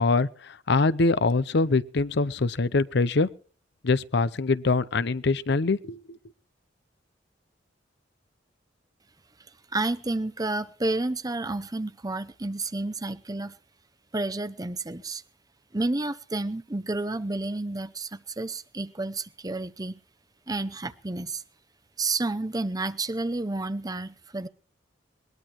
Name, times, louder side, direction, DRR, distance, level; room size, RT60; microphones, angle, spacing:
voice 1, 0.0-3.3 3.8-6.2, left 3 dB, 65° left, 0.7 m, -24 dB
voice 2, 9.7-13.6 14.1-15.2 15.7-20.0 20.5-21.4 22.0-24.5, right 2 dB, 20° right, 0.7 m, -30 dB
21.5 x 20.5 x 3.0 m
head